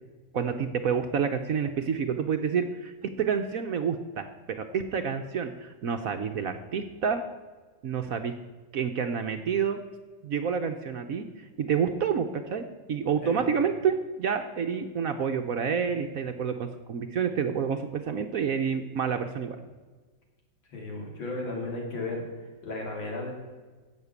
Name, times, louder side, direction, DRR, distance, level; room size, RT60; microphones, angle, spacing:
voice 1, 0.3-7.2 7.8-8.3 8.7-9.8 10.2-19.6, right 6 dB, 60° right, 6 dB, 1.0 m, -29 dB
voice 2, 20.7-22.3 22.6-23.3, left 2 dB, 85° left, 0 dB, 3.7 m, -34 dB
11.0 x 8.0 x 8.2 m, 1.3 s
omnidirectional pair, 2.1 m